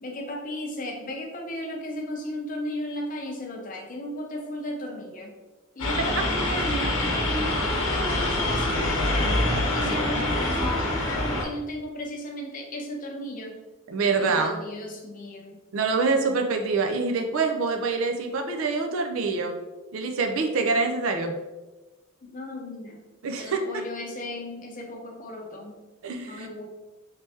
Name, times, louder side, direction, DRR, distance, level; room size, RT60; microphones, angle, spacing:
voice 1, 0.0-5.3 5.7-13.6 14.2-15.6 22.2-23.0 23.3-25.8 26.2-26.7, left 1 dB, 35° left, 1 dB, 0.6 m, -35 dB
sound 1, 5.8-11.4, left 1 dB, 90° left, 1.0 m, -25 dB
voice 2, 13.9-14.6 15.7-19.5 19.9-21.3 23.2-23.6 26.0-26.5, right 4 dB, 65° right, 4 dB, 0.4 m, -25 dB
3.3 x 3.2 x 2.8 m, 1.2 s
head